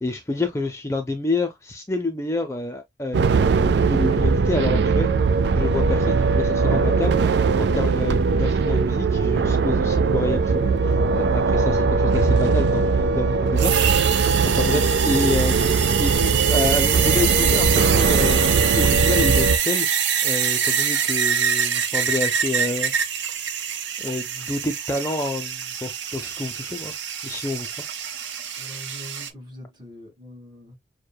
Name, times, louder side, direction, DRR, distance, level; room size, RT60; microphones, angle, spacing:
voice 1, 0.0-3.3 3.6-5.1 5.5-13.8 14.4-18.4 18.8-19.9 20.2-22.9 24.0-26.9 27.2-27.7, left 2 dB, 15° left, 0.4 m, -28 dB
sound 1, 3.1-19.6, right 4 dB, 60° right, 0.3 m, -20 dB
sound 2, 13.6-29.3, right 7 dB, 80° right, 0.8 m, -24 dB
voice 2, 28.6-30.8, left 1 dB, 25° right, 1.4 m, -42 dB
6.5 x 2.2 x 2.2 m
head